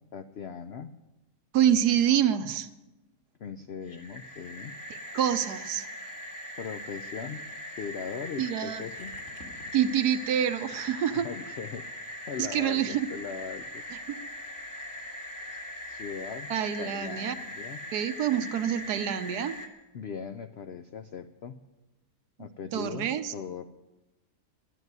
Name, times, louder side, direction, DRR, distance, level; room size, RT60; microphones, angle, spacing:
voice 1, 0.1-0.9 3.4-4.8 6.6-7.5 7.8-9.2 11.1-11.9 12.3-13.8 15.9-16.5 16.8-17.8 19.9-21.6 22.4-23.6, left 6 dB, 60° left, 8 dB, 0.6 m, -39 dB
voice 2, 1.5-2.7 5.1-5.9 8.4-8.8 9.7-11.3 12.4-13.1 13.9-14.0 16.5-17.3 17.9-19.6 22.7-23.3, right 9 dB, 75° right, 10 dB, 1.3 m, -26 dB
sound 1, 3.8-19.7, left 1 dB, 45° left, 2.3 m, -41 dB
12.0 x 10.5 x 9.4 m, 1.0 s
omnidirectional pair, 1.7 m